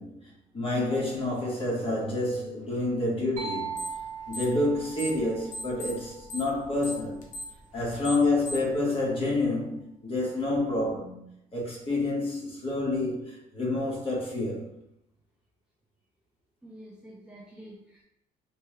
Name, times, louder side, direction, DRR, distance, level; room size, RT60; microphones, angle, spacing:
voice 1, 0.0-3.8 4.3-7.2 7.7-11.2 11.5-14.7, left 2 dB, 35° left, -4 dB, 1.3 m, -28 dB
sound 1, 3.4-7.1, right 7 dB, 45° right, 1.0 m, -40 dB
sound 2, 3.8-4.0 4.3-5.2 5.5-8.8, equal, 50° left, 0.8 m, -38 dB
voice 2, 7.7-8.1 16.6-18.0, equal, 5° right, -4 dB, 0.5 m, -49 dB
3.3 x 2.2 x 3.1 m, 0.74 s
cardioid pair, 110°, 17 cm